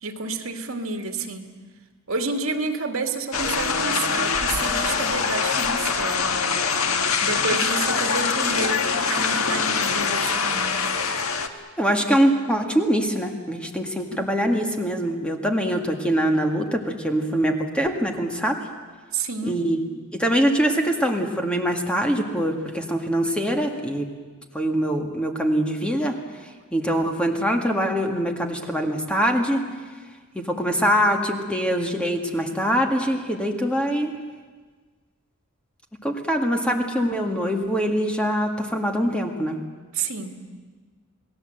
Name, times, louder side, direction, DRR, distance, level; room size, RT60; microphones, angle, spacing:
voice 1, 0.0-1.5 2.1-6.4 7.2-10.8 14.1-14.3 19.1-19.6 39.9-40.4, right 3 dB, 70° right, 5 dB, 2.3 m, -30 dB
sound 1, 3.3-11.5, left 5 dB, 85° left, 1.5 m, -24 dB
voice 2, 11.8-18.6 19.4-19.9 20.1-24.1 24.5-26.2 26.7-29.6 30.4-34.1 36.0-39.6, equal, 5° left, 3 dB, 1.9 m, -23 dB
28.5 x 18.5 x 7.9 m, 1.4 s
head